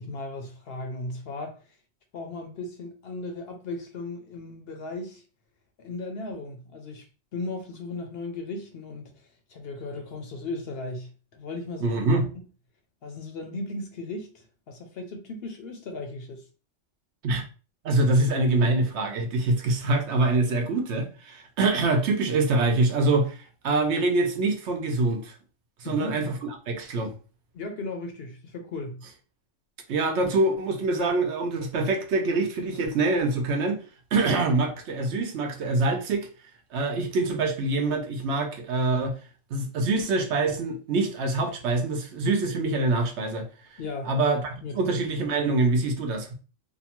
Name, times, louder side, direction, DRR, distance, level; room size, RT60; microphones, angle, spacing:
voice 1, 0.0-1.6 2.1-5.2 5.8-7.0 7.3-12.2 13.0-16.4 25.8-26.1 27.5-29.0 43.8-44.1 44.6-44.8, left 2 dB, 60° left, 0.7 m, -36 dB
voice 2, 11.8-12.3 17.2-17.4 17.8-25.3 25.8-27.1 29.9-33.8 34.1-36.3 36.7-39.1 39.5-43.5 43.7-43.8 44.1-46.3, right 2 dB, 70° right, 0.9 m, -25 dB
2.7 x 2.2 x 2.8 m
omnidirectional pair, 1.3 m